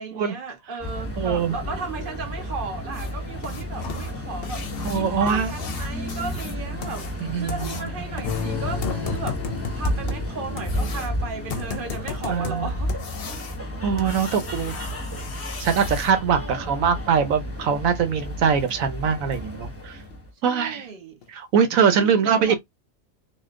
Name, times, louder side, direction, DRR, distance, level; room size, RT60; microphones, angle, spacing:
voice 1, 0.0-4.6 4.9-7.1 7.3-12.9 16.4-16.8 20.4-21.1 21.9-22.5, right 4 dB, 45° right, 1.2 m, -35 dB
sound 1, 0.8-20.3, equal, 10° left, 0.9 m, -32 dB
voice 2, 1.2-1.5 4.8-5.5 7.2-7.9 12.3-12.7 13.8-14.7 15.6-20.0 20.4-20.9 21.3-22.5, right 7 dB, 90° right, 1.2 m, -22 dB
sound 2, 2.9-16.1 18.4-18.5 19.0-19.1 19.5-19.6 20.1-20.2 20.7-20.8 21.2-21.3 21.8-21.9, left 5 dB, 55° left, 0.8 m, -36 dB
sound 3, 8.2-12.3 12.8-12.9, left 9 dB, 80° left, 1.0 m, -35 dB
4.1 x 2.2 x 3.6 m
omnidirectional pair, 1.4 m